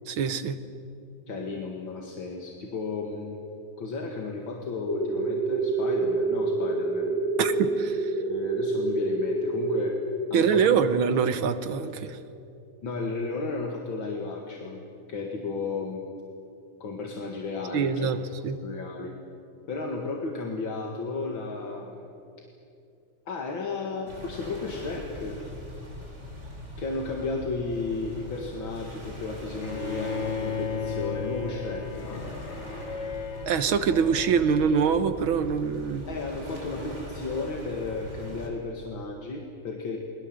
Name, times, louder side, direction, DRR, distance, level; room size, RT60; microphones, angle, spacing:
voice 1, 0.1-0.6 7.4-8.1 10.3-12.2 17.7-18.2 18.4-18.6 33.5-36.1, right 6 dB, 75° right, 10 dB, 2.0 m, -24 dB
voice 2, 1.3-3.4 3.8-7.2 8.2-10.0 10.3-10.8 12.8-14.8 15.1-16.0 16.8-18.3 18.6-19.1 19.7-22.1 23.3-25.4 26.8-32.2 36.1-40.0, left 3 dB, 70° left, 1 dB, 2.7 m, -34 dB
sound 1, 4.9-9.8, right 3 dB, 15° right, 3.6 m, -27 dB
sound 2, 24.1-38.5, equal, 35° right, 4.5 m, -42 dB
Bowed string instrument, 29.6-35.7, left 5 dB, 40° left, 1.4 m, -35 dB
30.0 x 21.5 x 7.8 m, 2.7 s
omnidirectional pair, 2.2 m